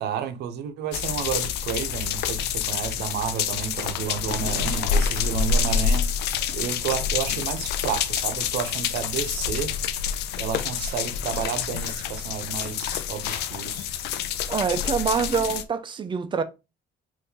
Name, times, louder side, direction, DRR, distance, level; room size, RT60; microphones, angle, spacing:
voice 1, 0.0-6.1 6.5-9.7 10.4-13.9, right 8 dB, 75° right, 0.6 m, -31 dB
sound 1, 0.9-15.6, left 7 dB, 80° left, 0.4 m, -27 dB
voice 2, 14.5-16.4, right 6 dB, 30° right, 0.4 m, -25 dB
2.7 x 2.6 x 3.6 m
cardioid pair, 110°, 17 cm